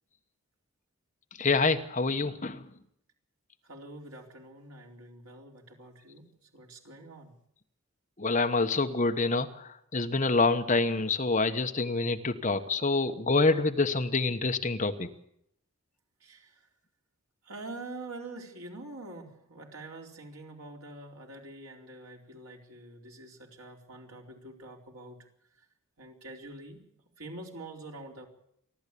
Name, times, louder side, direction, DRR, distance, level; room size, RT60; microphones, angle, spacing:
voice 1, 1.4-2.6 8.2-15.1, left 3 dB, 35° left, 7 dB, 1.1 m, -27 dB
voice 2, 3.6-6.3 6.5-7.3 10.7-10.9 16.2-16.6 17.4-25.2 26.0-26.8 27.2-28.3, right 2 dB, 75° right, 1 dB, 4.3 m, -45 dB
29.0 x 12.0 x 8.5 m, 0.73 s
head